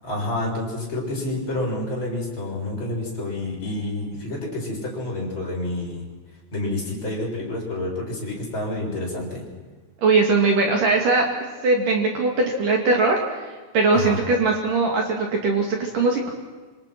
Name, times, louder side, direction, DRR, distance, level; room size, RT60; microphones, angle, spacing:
voice 1, 0.0-6.0 6.5-9.4 13.9-14.2, left 1 dB, 25° left, -3 dB, 7.4 m, -28 dB
voice 2, 10.0-11.2 11.6-13.2 13.7-16.3, right 3 dB, 50° right, 1 dB, 3.6 m, -20 dB
26.5 x 26.5 x 6.1 m, 1.3 s
omnidirectional pair, 5.8 m